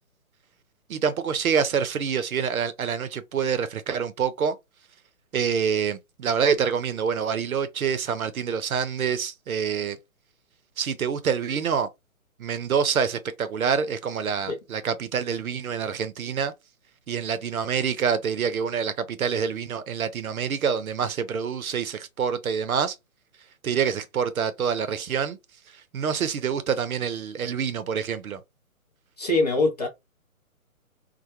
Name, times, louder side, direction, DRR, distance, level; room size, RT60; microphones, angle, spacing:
voice 1, 0.9-4.6 5.3-10.0 10.8-11.9 12.4-16.5 17.1-22.9 23.6-25.4 25.9-28.4, right 7 dB, 75° right, 0.6 m, -26 dB
voice 2, 29.2-29.9, left 2 dB, 30° left, 0.5 m, -23 dB
2.2 x 2.1 x 2.8 m
figure-of-eight pair, 135°, 43 cm